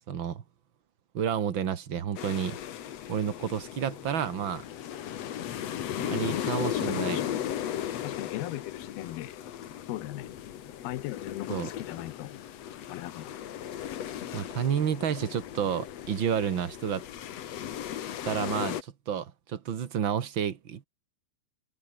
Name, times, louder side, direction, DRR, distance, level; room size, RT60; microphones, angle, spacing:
voice 1, 0.1-0.4 1.1-2.6 3.1-4.6 6.0-7.2 11.5-11.7 14.3-17.0 18.2-20.8, right 8 dB, 70° right, 1.1 m, -30 dB
sound 1, 2.2-18.8, left 10 dB, 60° left, 1.9 m, -36 dB
voice 2, 6.7-7.4 8.0-9.4 9.9-10.3 10.8-12.4 12.9-13.3, left 16 dB, 75° left, 2.8 m, -38 dB
omnidirectional pair, 4.6 m